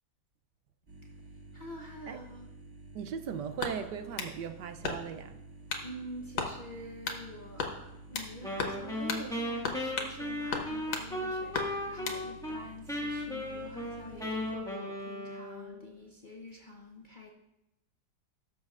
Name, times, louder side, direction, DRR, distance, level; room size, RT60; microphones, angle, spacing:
sound 1, 0.9-14.6, right 3 dB, 35° right, 1.9 m, -51 dB
voice 1, 1.5-2.5 5.8-17.3, equal, 40° left, 0.7 m, -46 dB
voice 2, 2.9-5.4, right 7 dB, 75° right, 1.1 m, -38 dB
sound 2, 3.6-4.4 4.8-5.3 5.7-5.9 6.4-6.6 7.1-7.2 7.6-8.3 8.6-8.8 9.1-9.3 9.6-10.2 10.5-11.1 11.5-12.2, left 4 dB, 90° left, 1.9 m, -35 dB
Wind instrument woodwind instrument, 8.4-12.6 12.9-15.8, left 1 dB, ahead, 1.3 m, -36 dB
17.0 x 7.3 x 2.4 m
omnidirectional pair, 2.0 m